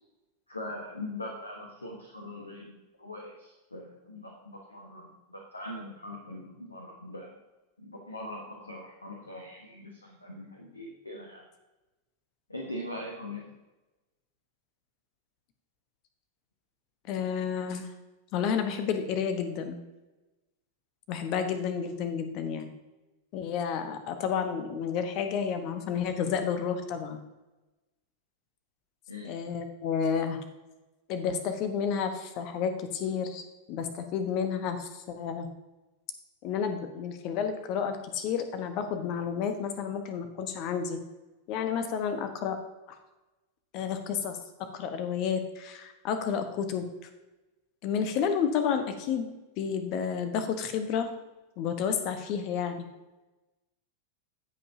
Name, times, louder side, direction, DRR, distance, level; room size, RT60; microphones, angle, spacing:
voice 1, 0.5-2.7 3.0-7.3 7.8-11.5 12.5-13.5 29.1-29.4, left 1 dB, 80° left, 1 dB, 1.2 m, -41 dB
voice 2, 17.1-17.9 18.3-19.8 21.1-22.7 23.3-27.2 29.2-30.4 31.1-33.4 33.7-35.5 36.4-41.0 41.5-42.6 42.9-43.0 43.7-44.4 44.7-46.8 47.8-49.3 49.6-51.1 51.6-52.8, left 7 dB, 40° left, 8 dB, 1.1 m, -31 dB
16.0 x 5.6 x 2.8 m, 1.1 s
figure-of-eight pair, 90°, 0 cm